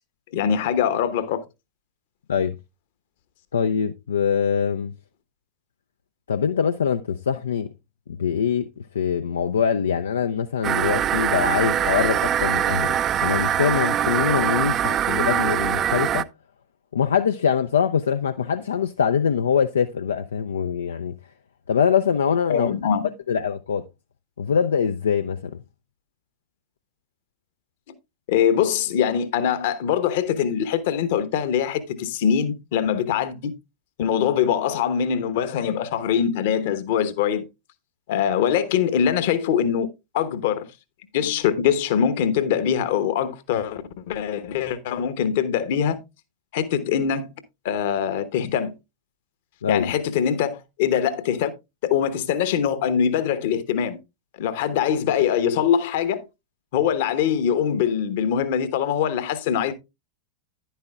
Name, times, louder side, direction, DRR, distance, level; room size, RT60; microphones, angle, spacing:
voice 1, 0.3-1.4 22.5-23.1 28.3-33.5 34.0-37.5 38.1-39.9 40.1-40.6 41.1-46.0 46.5-47.3 47.6-48.7 49.7-51.5 51.8-54.0 54.4-56.2 56.7-59.7, left 8 dB, 50° left, 1.0 m, -23 dB
voice 2, 3.5-4.9 6.3-7.7 8.2-8.7 8.9-13.0 13.2-16.3 16.9-21.1 21.7-22.7 23.3-23.8 24.4-25.5 49.6-49.9, left 7 dB, 65° left, 0.4 m, -23 dB
sound 1, 10.6-16.2, right 10 dB, 30° right, 0.5 m, -23 dB
10.5 x 10.0 x 2.3 m
figure-of-eight pair, 90°, 0 cm